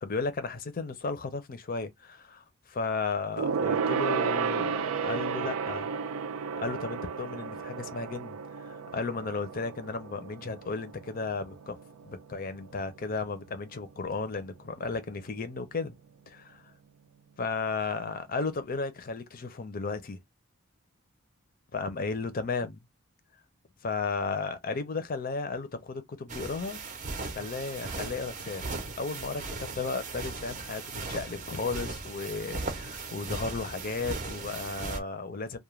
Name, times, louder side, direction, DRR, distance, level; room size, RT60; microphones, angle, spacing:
voice 1, 0.0-6.0 6.6-11.8 12.0-15.9 16.3-16.7 17.4-20.2 21.7-22.8 23.8-26.8 27.4-28.7 29.0-35.6, left 4 dB, 45° left, 0.5 m, -34 dB
Gong, 3.4-13.1 13.4-13.7 14.0-14.1, right 6 dB, 85° right, 0.4 m, -33 dB
sound 1, 26.3-35.0, right 3 dB, 35° right, 0.6 m, -38 dB
2.3 x 2.1 x 3.0 m
head